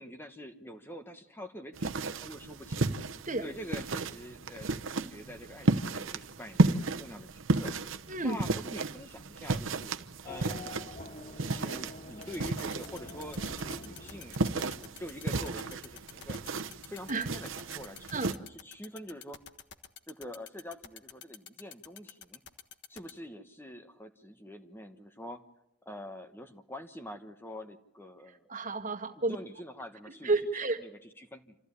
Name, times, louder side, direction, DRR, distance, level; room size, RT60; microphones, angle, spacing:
voice 1, 0.0-2.9 3.4-7.8 8.2-9.9 10.2-10.8 11.4-16.4 16.8-19.4 20.1-22.4 22.9-25.4 25.8-28.5 29.3-30.3 30.6-31.6, equal, 10° left, 6 dB, 1.2 m, -45 dB
sound 1, 1.8-18.3, right 2 dB, 85° right, 1.0 m, -33 dB
voice 2, 8.1-8.4 17.1-17.3 18.1-18.3 28.5-29.4 30.2-30.8, right 3 dB, 40° right, 6 dB, 1.9 m, -30 dB
Race car auto racing / Accelerating revving vroom, 10.2-15.0, left 2 dB, 40° left, 1.0 m, -47 dB
sound 2, 12.2-23.1, left 9 dB, 60° left, 1.4 m, -47 dB
27.0 x 14.5 x 9.9 m, 0.77 s
head